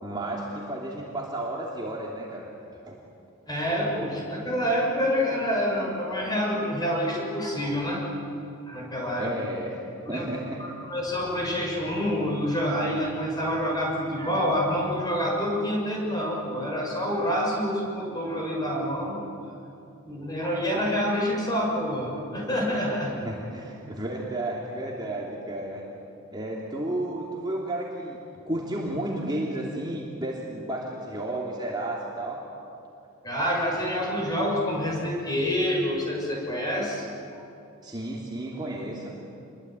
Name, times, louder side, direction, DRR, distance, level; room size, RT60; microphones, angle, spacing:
voice 1, 0.0-2.5 2.9-3.0 9.2-9.8 10.1-10.6 23.2-25.8 26.3-28.2 28.4-32.4 37.8-39.1, right 1 dB, 20° right, -3 dB, 2.9 m, -32 dB
voice 2, 3.5-8.0 8.7-9.3 10.0-10.2 10.6-19.2 20.0-23.1 33.2-37.1 37.3-37.4, equal, 20° left, -2 dB, 6.5 m, -27 dB
27.5 x 22.5 x 9.2 m, 2.7 s
head